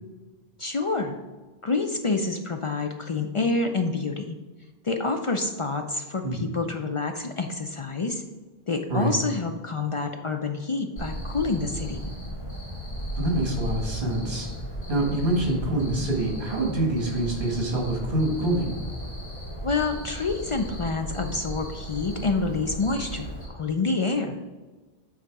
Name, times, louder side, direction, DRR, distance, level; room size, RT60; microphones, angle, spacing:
voice 1, 0.6-1.1 1.6-4.4 4.8-8.2 8.7-12.1 19.6-24.4, left 3 dB, 45° left, 4 dB, 0.4 m, -27 dB
Cricket, 11.0-23.5, equal, 75° left, 2.8 m, -35 dB
voice 2, 13.2-14.5 14.9-18.7, right 1 dB, 55° right, -1 dB, 2.0 m, -26 dB
8.9 x 4.0 x 4.6 m, 1.3 s
omnidirectional pair, 1.0 m